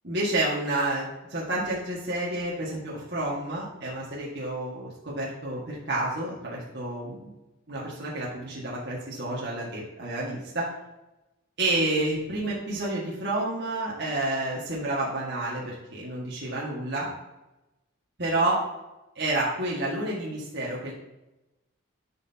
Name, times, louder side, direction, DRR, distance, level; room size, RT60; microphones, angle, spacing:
voice 1, 0.0-7.2 7.7-10.7 11.6-17.1 18.2-18.6 19.2-20.9, right 2 dB, 55° right, -6 dB, 1.9 m, -29 dB
12.0 x 5.8 x 2.9 m, 0.99 s
head